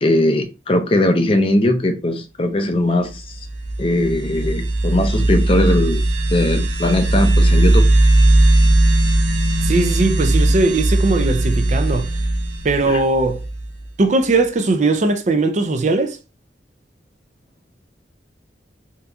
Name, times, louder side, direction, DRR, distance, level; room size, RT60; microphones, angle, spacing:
voice 1, 0.0-3.4 3.8-6.0 6.3-7.9 12.8-13.0, left 1 dB, 30° left, 0.5 m, -19 dB
sound 1, 3.3-13.8, right 1 dB, 85° right, 0.7 m, -17 dB
voice 2, 9.6-12.1 12.6-13.4 14.0-16.2, right 3 dB, 40° right, 0.4 m, -19 dB
3.7 x 2.8 x 2.3 m
head